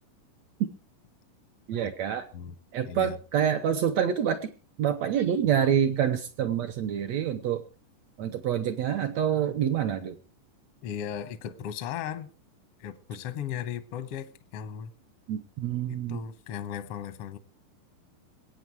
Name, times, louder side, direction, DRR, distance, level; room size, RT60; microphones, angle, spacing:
voice 1, 1.7-2.2 2.7-4.5 4.8-7.6 8.2-10.2 15.3-16.2, right 9 dB, 70° right, 1.7 m, -27 dB
voice 2, 2.8-3.2 10.8-12.3 12.8-14.9 15.9-17.4, left 9 dB, 75° left, 1.4 m, -36 dB
21.5 x 8.7 x 4.7 m
omnidirectional pair, 3.9 m